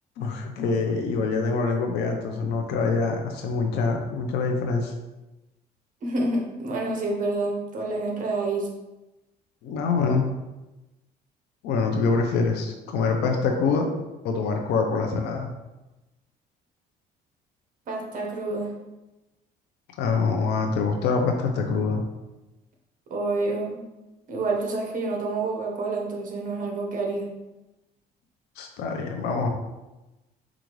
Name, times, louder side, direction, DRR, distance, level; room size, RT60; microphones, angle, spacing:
voice 1, 0.2-4.9 9.6-10.3 11.6-13.9 14.2-15.5 20.0-22.0 28.6-29.5, left 4 dB, 80° left, 3 dB, 0.6 m, -25 dB
voice 2, 6.0-8.7 17.9-18.8 23.1-23.8 24.3-27.3, right 2 dB, 50° right, 0 dB, 0.9 m, -28 dB
4.9 x 2.5 x 3.1 m, 1.0 s
cardioid pair, 110°, 17 cm